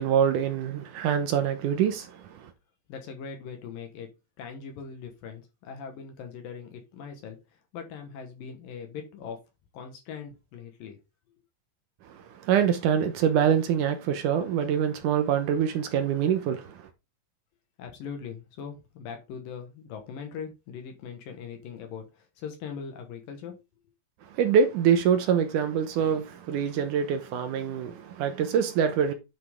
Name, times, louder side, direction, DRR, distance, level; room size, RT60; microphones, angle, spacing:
voice 1, 0.0-2.1 12.4-16.8 24.3-29.1, right 8 dB, 70° right, 2.2 m, -25 dB
voice 2, 2.9-4.1 4.4-7.4 7.7-9.4 9.7-11.0 17.8-23.6, left 6 dB, 75° left, 3.1 m, -40 dB
10.0 x 5.7 x 3.6 m
omnidirectional pair, 4.1 m